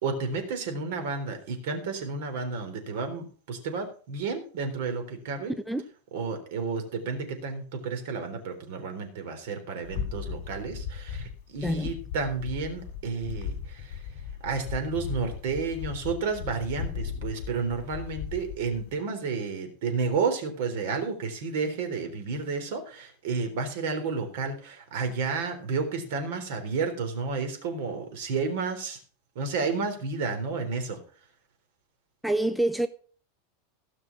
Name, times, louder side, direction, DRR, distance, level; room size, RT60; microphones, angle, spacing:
voice 1, 0.0-5.5 6.1-14.0 14.4-29.0 29.4-31.0, right 4 dB, 55° right, 3.7 m, -31 dB
sound 1, 9.8-18.9, left 7 dB, 50° left, 4.5 m, -37 dB
voice 2, 11.6-11.9 32.2-32.9, right 1 dB, ahead, 0.4 m, -26 dB
17.0 x 6.1 x 6.0 m
supercardioid pair, 175°, 0 cm